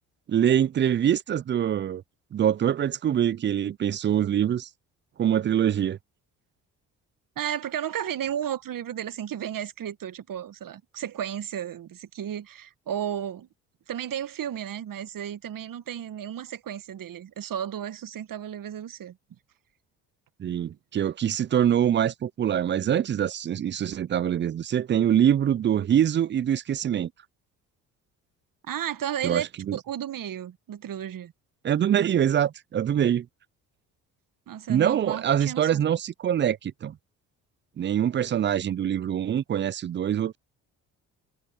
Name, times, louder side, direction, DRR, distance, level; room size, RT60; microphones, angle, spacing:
voice 1, 0.3-2.0 2.3-4.7 5.2-6.0 20.4-27.1 29.2-29.8 31.6-33.3 34.7-37.0 37.8-40.4, right 9 dB, 30° right, 0.4 m, -24 dB
voice 2, 7.4-13.5 13.9-19.2 28.7-31.3 34.5-35.8, right 10 dB, 50° right, 1.6 m, -33 dB
hypercardioid pair, 55°, 41 cm